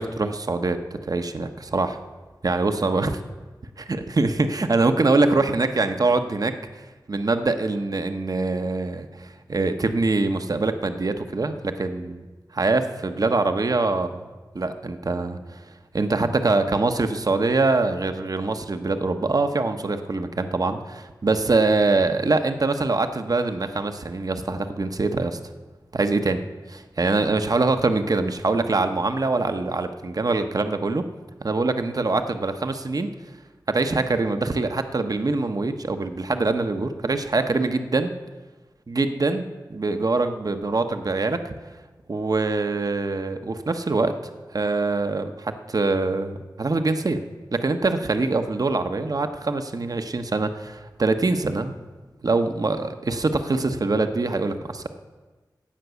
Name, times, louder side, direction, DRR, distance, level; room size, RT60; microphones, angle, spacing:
voice 1, 0.0-2.0 2.4-3.1 3.8-12.2 12.5-14.3 14.5-15.6 15.9-25.4 25.9-26.4 26.7-31.0 31.4-33.1 33.7-38.1 38.9-41.5 42.1-44.2 44.5-47.2 47.5-51.7 52.2-54.9, right 3 dB, 55° right, 7 dB, 0.9 m, -24 dB
16.0 x 6.0 x 8.2 m, 1.3 s
wide cardioid pair, 85°, 8 cm